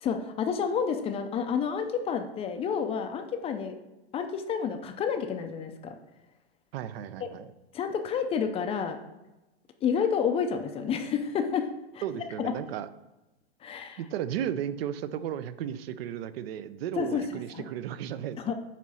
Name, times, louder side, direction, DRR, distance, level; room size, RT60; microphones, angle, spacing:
voice 1, 0.0-3.8 4.1-6.0 7.2-7.3 7.7-9.0 9.8-11.7 11.9-12.0 12.4-12.5 13.6-14.0 17.0-17.7 18.4-18.5, left 7 dB, 20° left, 6 dB, 0.4 m, -30 dB
voice 2, 6.7-7.5 12.0-12.9 14.0-18.5, right 10 dB, 65° right, 14 dB, 0.6 m, -34 dB
8.3 x 3.1 x 5.5 m, 1.0 s
hypercardioid pair, 130°, 32 cm